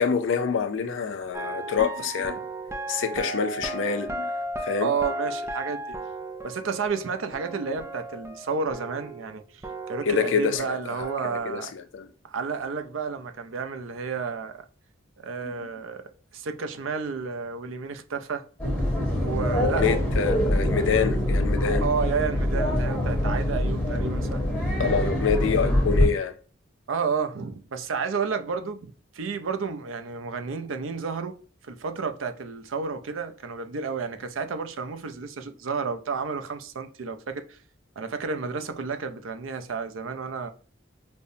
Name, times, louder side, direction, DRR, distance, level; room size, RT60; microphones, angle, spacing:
voice 1, 0.0-2.4 2.9-4.3 4.6-4.9 10.1-11.1 11.5-12.1 15.4-15.7 19.6-21.9 24.8-26.3, left 6 dB, 70° left, 0.4 m, -26 dB
sound 1, 1.3-9.4 9.6-11.4, right 1 dB, 15° right, 0.3 m, -35 dB
voice 2, 4.8-6.0 6.4-9.6 9.9-11.7 12.3-14.7 15.2-16.0 16.3-18.5 19.2-19.9 21.8-24.4 26.9-31.4 31.6-37.6 38.0-40.5, right 5 dB, 80° right, 0.5 m, -31 dB
sound 2, 18.6-26.1, left 1 dB, 10° left, 1.1 m, -24 dB
5.2 x 2.1 x 2.6 m
head